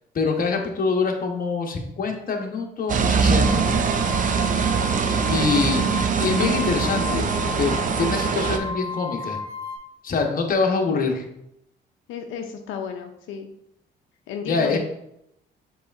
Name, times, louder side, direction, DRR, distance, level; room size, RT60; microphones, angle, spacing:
voice 1, 0.1-4.5 5.3-5.8 6.2-7.3 7.6-9.4 10.0-11.2 14.5-14.8, left 4 dB, 45° left, 2 dB, 0.9 m, -25 dB
sound 1, 2.9-8.6, right 5 dB, 40° right, 0.5 m, -22 dB
sound 2, 3.4-9.8, left 4 dB, 20° left, 1.0 m, -34 dB
voice 2, 12.1-13.5 14.3-14.8, left 7 dB, 90° left, 4 dB, 0.5 m, -33 dB
6.9 x 3.1 x 2.4 m, 0.78 s
cardioid pair, 90°, 20 cm